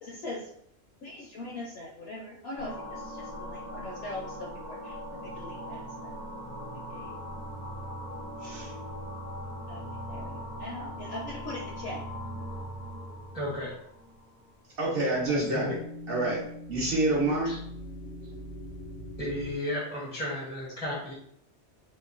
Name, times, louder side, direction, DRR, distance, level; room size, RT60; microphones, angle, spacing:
voice 1, 0.0-0.4 1.0-6.1 6.9-7.1 9.7-9.8 10.1-12.0 17.4-17.6, left 2 dB, 70° left, -3 dB, 0.7 m, -41 dB
sound 1, 2.6-14.5 15.0-19.6, equal, 85° left, 1.2 m, -40 dB
voice 2, 8.4-8.7 14.8-15.8 16.1-16.4 16.7-17.5, right 2 dB, 60° right, -4 dB, 0.9 m, -27 dB
voice 3, 13.3-13.7 15.3-15.8 19.2-21.1, left 1 dB, 5° right, -5 dB, 0.5 m, -33 dB
2.9 x 2.2 x 2.4 m, 0.69 s
omnidirectional pair, 1.2 m